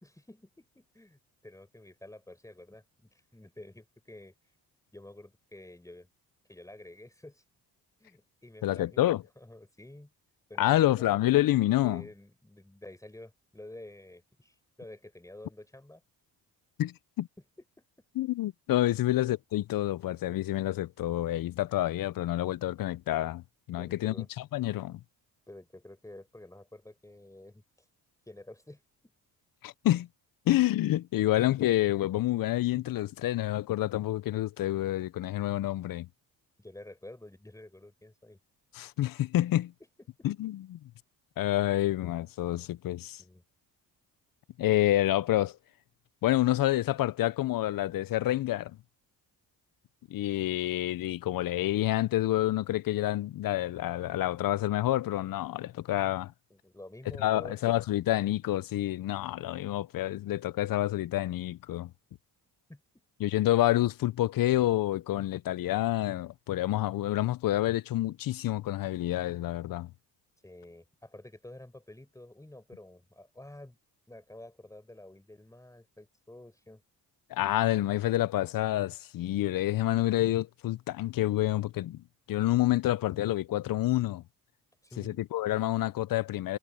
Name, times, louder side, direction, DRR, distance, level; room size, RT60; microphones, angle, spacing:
voice 1, 0.0-4.6 4.9-6.1 6.5-7.4 8.0-10.1 10.5-11.2 11.8-16.0 23.8-24.3 25.5-27.9 28.3-28.8 36.6-38.4 40.0-40.3 43.2-43.4 56.5-57.6 62.7-63.0 70.4-73.8 74.1-76.8 84.8-85.2, left 1 dB, 10° left, 4.8 m, -50 dB
voice 2, 8.6-9.2 10.6-12.0 16.8-17.3 18.2-23.4 23.7-25.0 29.6-30.1 30.5-36.1 38.7-39.7 40.2-40.8 41.4-43.2 44.6-45.6 46.2-48.8 50.1-56.3 57.2-61.9 63.2-69.9 77.3-84.2 85.0-86.6, left 14 dB, 55° left, 0.6 m, -28 dB
cardioid pair, 100°, 40 cm